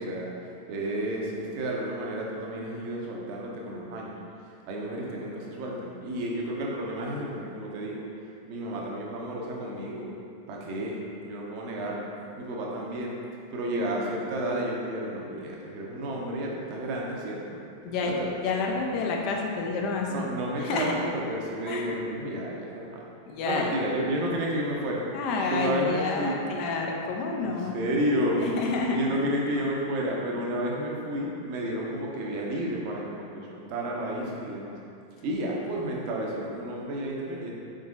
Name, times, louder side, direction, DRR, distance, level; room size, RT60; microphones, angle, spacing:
voice 1, 0.0-10.1 10.5-12.1 12.4-13.1 13.5-17.6 18.0-18.3 20.1-23.1 23.4-25.0 25.5-26.4 27.4-34.8 35.2-37.5, right 1 dB, 45° right, -2 dB, 0.7 m, -31 dB
voice 2, 18.4-20.3 20.6-20.9 21.7-21.9 23.3-23.9 25.1-27.7 28.4-29.0, left 4 dB, 40° left, 0 dB, 0.6 m, -29 dB
4.8 x 3.8 x 2.6 m, 2.5 s
figure-of-eight pair, 90°, 0 cm